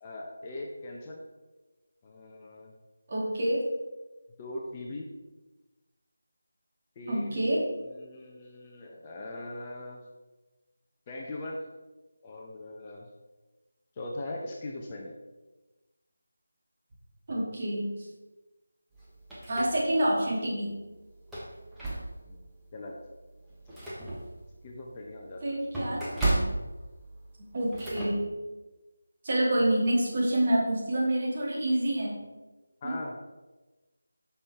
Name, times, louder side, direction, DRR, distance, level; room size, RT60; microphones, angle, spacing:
voice 1, 0.0-1.2 2.0-2.7 4.4-5.1 7.0-10.0 11.1-11.6 12.2-13.1 14.0-15.2 22.2-22.4 22.7-22.9 24.6-25.6 32.8-33.2, left 2 dB, 20° left, -1 dB, 0.7 m, -40 dB
voice 2, 3.1-3.6 7.1-7.6 17.3-17.8 19.5-20.7 25.4-26.2 27.5-28.2 29.2-32.2 32.8-33.0, right 1 dB, 35° right, -4 dB, 2.1 m, -27 dB
sound 1, 18.9-20.2 20.6-20.7 21.2-22.4 22.9-23.0 23.4-28.1, right 2 dB, 5° right, 1.2 m, -34 dB
9.6 x 5.8 x 3.4 m, 1.1 s
figure-of-eight pair, 160°, 0 cm